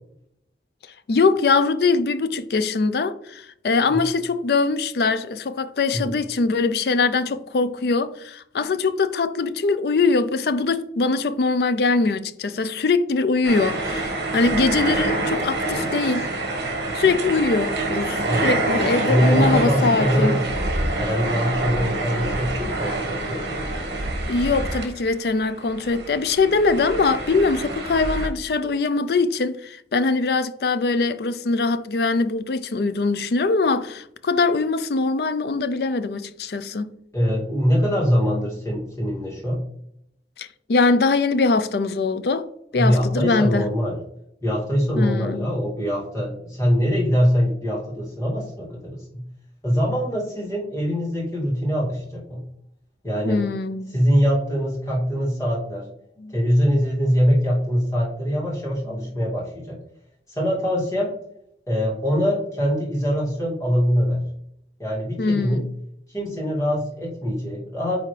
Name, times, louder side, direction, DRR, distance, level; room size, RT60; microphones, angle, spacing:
voice 1, 1.1-16.3 16.9-20.4 24.3-36.9 40.4-43.7 45.0-45.5 53.3-53.9 56.2-56.3 65.2-65.7, left 3 dB, 60° left, 0.4 m, -22 dB
sound 1, 13.4-25.3 25.6-28.3, right 2 dB, 65° right, 1.5 m, -26 dB
voice 2, 19.1-20.4 21.0-23.6 37.1-39.6 42.7-43.9 44.4-49.2 49.6-52.4 53.0-53.5 53.9-55.9 56.3-59.8 60.3-61.1 61.7-64.2 64.8-65.6 66.1-68.0, equal, 20° left, 2.3 m, -23 dB
9.2 x 3.5 x 3.3 m
head